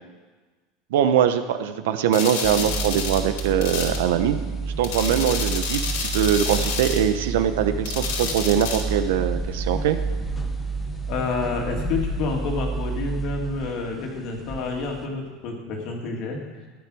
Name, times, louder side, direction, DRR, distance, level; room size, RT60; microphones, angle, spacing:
voice 1, 0.9-10.0, right 9 dB, 85° right, 9 dB, 1.1 m, -22 dB
sound 1, 2.1-4.0 4.8-7.0 7.8-8.8, left 5 dB, 80° left, 2.7 m, -29 dB
sound 2, 2.4-15.1, right 3 dB, 10° left, 1.0 m, -30 dB
voice 2, 11.1-16.4, left 3 dB, 40° left, 1 dB, 2.3 m, -29 dB
14.0 x 10.5 x 6.4 m, 1.3 s
supercardioid pair, 175°, 0 cm